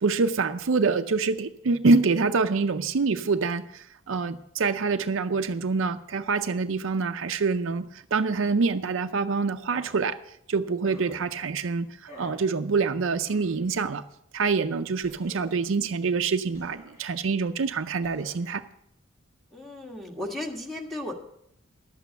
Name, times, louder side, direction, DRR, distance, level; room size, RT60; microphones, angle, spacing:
voice 1, 0.0-10.2 10.5-11.9 12.2-14.0 14.3-18.6, right 4 dB, 65° right, 9 dB, 0.5 m, -26 dB
sound 1, 9.7-10.0 10.8-11.4 12.1-12.5 13.2-13.8 15.0-15.7 16.5-17.2 18.0-18.5, equal, 35° left, 4.9 m, -49 dB
voice 2, 19.5-21.1, left 1 dB, ahead, -3 dB, 1.7 m, -35 dB
11.0 x 8.3 x 6.5 m, 0.74 s
head